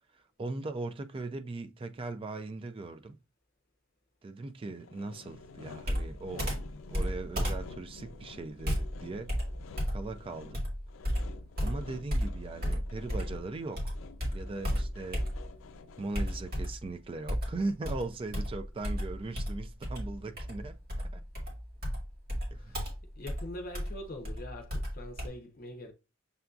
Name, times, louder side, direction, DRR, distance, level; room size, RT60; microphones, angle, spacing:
voice 1, 0.1-3.2 4.2-6.5 6.9-9.3 9.9-10.6 11.6-14.0 14.3-15.3 16.0-20.8 21.1-21.2 22.5-22.8, right 3 dB, 25° right, 0.3 m, -39 dB
Sawing, 4.7-16.7, left 4 dB, 90° left, 0.4 m, -51 dB
Computer keyboard, 5.8-13.4 13.8-15.7 16.1-16.9 17.3-25.3, equal, 50° right, 1.7 m, -34 dB
voice 2, 22.5-22.9 23.2-25.9, left 1 dB, 45° left, 0.6 m, -43 dB
6.7 x 2.5 x 2.3 m
head